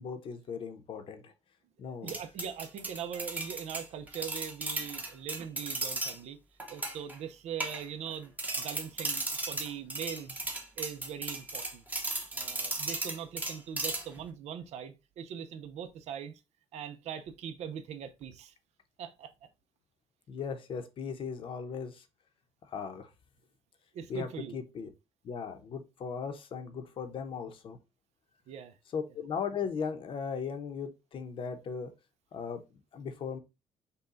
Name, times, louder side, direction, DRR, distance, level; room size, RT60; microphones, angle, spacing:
voice 1, 0.0-1.3 1.8-2.1 20.3-22.0 22.6-23.1 24.1-24.9 25.2-27.8 28.9-31.9 32.3-33.4, left 6 dB, 50° left, 0.8 m, -38 dB
voice 2, 1.9-6.4 6.7-10.4 10.8-11.8 12.3-16.4 16.7-18.5 19.0-19.3 23.9-24.6 28.5-28.7, right 8 dB, 70° right, 0.6 m, -41 dB
sound 1, 2.1-6.2 6.6-7.2 7.6-8.1 8.4-14.2, right 2 dB, 15° right, 0.9 m, -36 dB
5.5 x 2.3 x 3.8 m
cardioid pair, 145°, 12 cm